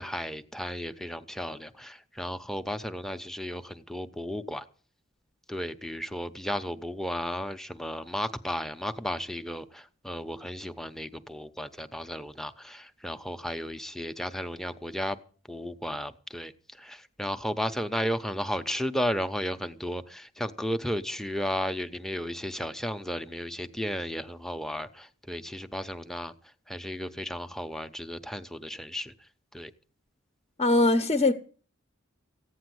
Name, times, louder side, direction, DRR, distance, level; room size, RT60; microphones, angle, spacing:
voice 1, 0.0-4.6 5.5-15.2 15.5-26.3 26.7-29.1 29.5-29.7, equal, ahead, 0.8 m, -34 dB
voice 2, 30.6-31.3, left 2 dB, 30° left, 1.0 m, -21 dB
15.5 x 9.4 x 7.9 m
head